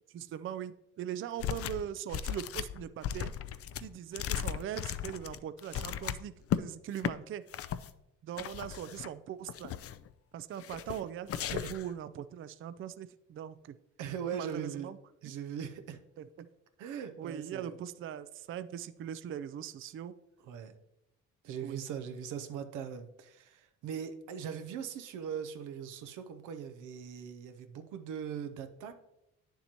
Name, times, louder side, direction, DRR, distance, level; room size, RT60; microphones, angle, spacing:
voice 1, 0.1-3.3 3.8-7.4 8.2-9.7 10.3-13.8 14.3-15.0 15.2-15.3 16.2-16.5 17.2-20.1 21.6-21.9, right 10 dB, 45° right, 13 dB, 0.4 m, -41 dB
sound 1, 1.4-6.6 7.0-7.1 7.5-7.9 8.4-9.1 9.5-10.1 10.6-11.0 11.3-11.9, left 10 dB, 50° left, 0.4 m, -36 dB
voice 2, 14.0-14.9 15.2-16.0 16.8-17.7 20.5-20.8 21.4-28.9, right 8 dB, 90° right, 8 dB, 0.7 m, -40 dB
9.1 x 7.0 x 2.9 m, 0.88 s
cardioid pair, 90°, 30 cm